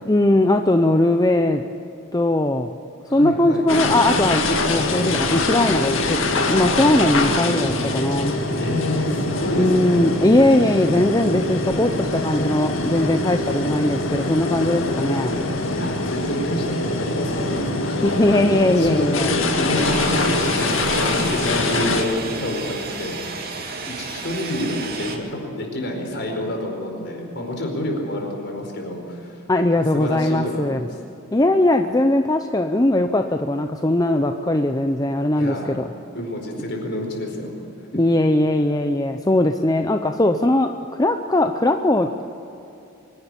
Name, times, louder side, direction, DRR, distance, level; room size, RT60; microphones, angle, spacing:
voice 1, 0.1-1.6 2.1-2.7 3.1-8.3 9.5-15.4 18.0-19.3 29.5-30.8 31.3-35.8 37.9-40.7 41.0-42.2, left 1 dB, 15° left, 6 dB, 0.6 m, -19 dB
voice 2, 3.1-3.7 8.6-10.1 15.7-18.2 18.8-23.2 24.0-29.4 29.8-30.9 35.3-35.8 36.1-37.5, left 1 dB, 55° left, 1 dB, 4.7 m, -28 dB
sound 1, 3.7-22.0, left 2 dB, 70° left, 2.1 m, -23 dB
sound 2, 19.7-25.2, right 4 dB, 50° right, 2.6 m, -32 dB
24.5 x 11.5 x 9.9 m, 2.8 s
head